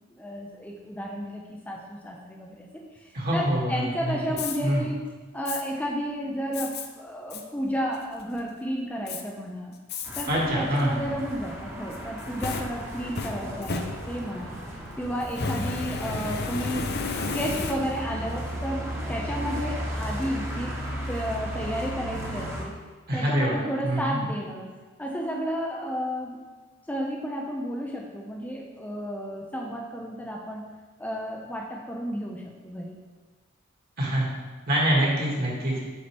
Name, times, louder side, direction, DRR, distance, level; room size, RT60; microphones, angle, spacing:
voice 1, 0.1-2.7 2.9-5.0 5.3-9.7 10.2-14.5 15.0-16.9 17.2-20.8 21.1-22.7 23.1-24.7 25.0-26.4 26.9-30.7 31.0-33.0, equal, 5° left, -1 dB, 0.5 m, -32 dB
voice 2, 3.1-4.1 4.6-4.8 10.3-11.1 23.1-24.2 34.0-34.3 34.7-35.7, equal, 50° right, -4 dB, 1.9 m, -25 dB
Fire, 4.4-4.6 5.5-5.6 6.5-6.9 7.3-7.4 7.9-8.4 9.1-9.2 9.9-10.3 10.8-10.9 11.9-14.4 15.3-18.1, left 4 dB, 50° left, 0.6 m, -33 dB
sound 1, 10.0-22.6, equal, 15° right, 1.1 m, -35 dB
8.1 x 5.6 x 3.4 m, 1.3 s
head